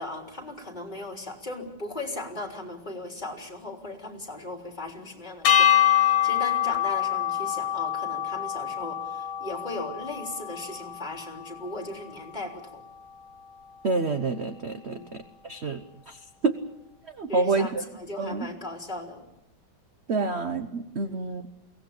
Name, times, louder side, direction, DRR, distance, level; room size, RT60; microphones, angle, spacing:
voice 1, 0.0-12.8 14.9-15.1 17.3-19.2 21.0-21.2, left 2 dB, 20° left, 2 dB, 3.7 m, -37 dB
sound 1, 5.4-11.8, left 11 dB, 65° left, 2.1 m, -25 dB
voice 2, 13.8-15.8 16.1-16.6 17.1-17.8 18.2-18.5 20.1-21.4, right 3 dB, 45° right, 9 dB, 0.9 m, -28 dB
23.0 x 17.5 x 8.6 m, 0.90 s
omnidirectional pair, 2.2 m